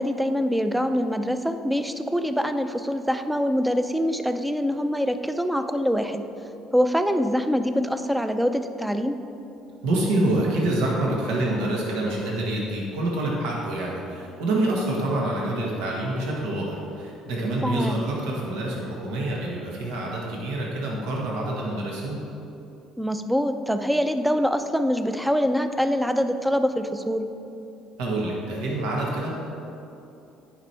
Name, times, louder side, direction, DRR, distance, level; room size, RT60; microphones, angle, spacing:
voice 1, 0.0-6.3 6.7-9.2 17.6-18.0 23.0-27.3, equal, 5° right, 9 dB, 0.5 m, -24 dB
voice 2, 9.8-22.2 28.0-29.3, right 1 dB, 90° right, -3 dB, 1.5 m, -26 dB
10.0 x 5.1 x 4.5 m, 2.9 s
cardioid pair, 105°, 0 cm